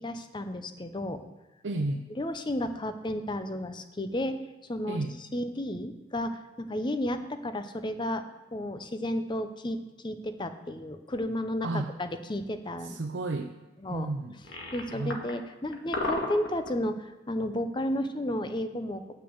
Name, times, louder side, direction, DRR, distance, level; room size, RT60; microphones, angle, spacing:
voice 1, 0.0-1.2 2.2-4.4 4.7-5.0 5.3-8.2 8.5-13.0 13.8-14.1 14.7-19.0, left 1 dB, 25° left, 9 dB, 0.7 m, -32 dB
voice 2, 1.6-2.0 4.9-5.2 11.6-11.9 12.8-13.5 13.9-14.4 14.9-15.1, right 2 dB, 75° right, 4 dB, 0.6 m, -32 dB
sound 1, 11.1-11.3 14.3-15.3 15.7-16.7, left 2 dB, 80° left, 1.8 m, -33 dB
8.1 x 6.3 x 7.9 m, 1.1 s
head